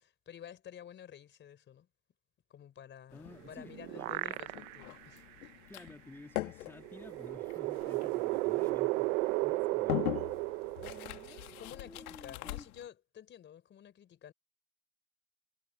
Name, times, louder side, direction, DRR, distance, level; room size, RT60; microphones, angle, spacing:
voice 1, 0.0-1.9 2.5-5.5 11.6-14.3, left 9 dB, 25° left, 4.2 m, -51 dB
sound 1, 3.1-12.9, left 17 dB, 70° left, 2.0 m, -42 dB
voice 2, 3.1-4.4 5.7-10.1 10.8-12.7, left 2 dB, 5° left, 2.9 m, -53 dB
sound 2, 3.3-5.0 5.4-5.5 6.8-11.6, right 23 dB, 55° right, 1.1 m, -34 dB
supercardioid pair, 150°, 45 cm